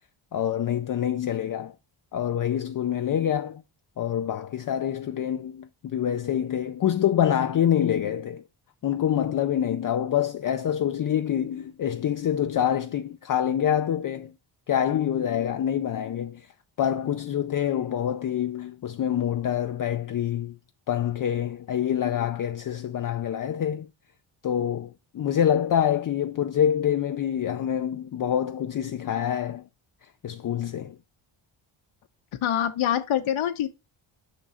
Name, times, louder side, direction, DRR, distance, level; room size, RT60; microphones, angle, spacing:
voice 1, 0.3-1.7 2.1-3.6 4.0-8.4 8.8-14.3 14.7-16.5 16.8-20.6 20.9-23.9 24.4-29.6 30.2-31.0, left 10 dB, 45° left, 0.5 m, -26 dB
voice 2, 32.4-33.7, left 10 dB, 70° left, 0.9 m, -25 dB
6.0 x 3.8 x 5.5 m
cardioid pair, 90°, 49 cm